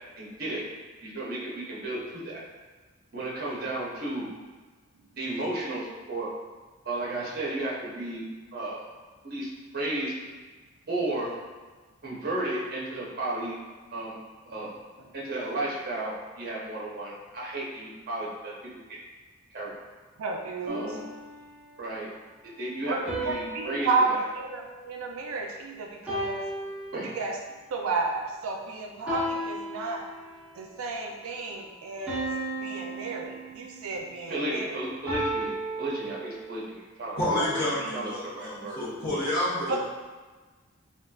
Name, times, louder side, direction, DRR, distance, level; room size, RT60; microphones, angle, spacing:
voice 1, 0.2-0.6 1.0-2.4 3.1-4.3 5.2-6.3 6.9-8.2 8.5-8.8 9.2-10.1 10.9-11.3 12.0-13.5 13.9-14.2 14.4-14.7 15.1-18.7 19.5-19.7 20.7-21.0 21.8-22.1 22.6-24.2 26.9-27.1 34.3-37.3 37.9-38.8 39.7-39.8, right 1 dB, 45° right, -5 dB, 0.7 m, -33 dB
voice 2, 20.2-21.0 22.9-26.5 27.0-30.1 30.6-34.8 37.4-37.9 39.7-39.8, right 3 dB, 80° right, 2 dB, 0.4 m, -32 dB
sound 1, 20.7-21.9 23.1-25.5 26.1-27.6 29.1-30.5 32.1-33.9 35.1-36.7, right 1 dB, 5° right, 0.7 m, -35 dB
voice 3, 37.2-39.8, left 1 dB, 45° left, -11 dB, 0.9 m, -29 dB
3.6 x 2.3 x 2.3 m, 1.3 s
head